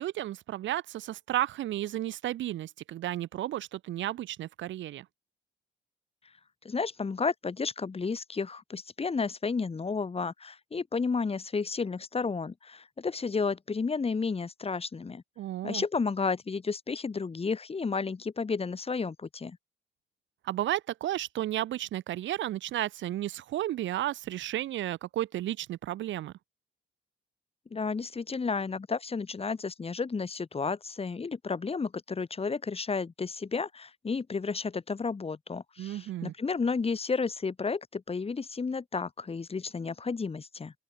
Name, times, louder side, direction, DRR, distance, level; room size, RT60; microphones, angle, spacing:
voice 1, 0.0-5.1 15.4-15.8 20.4-26.3 35.8-36.3, right 13 dB, 80° right, 6.0 m, -33 dB
voice 2, 6.6-15.2 15.6-19.6 27.7-40.7, left 4 dB, 30° left, 6.5 m, -32 dB
open air
cardioid pair, 95°, 19 cm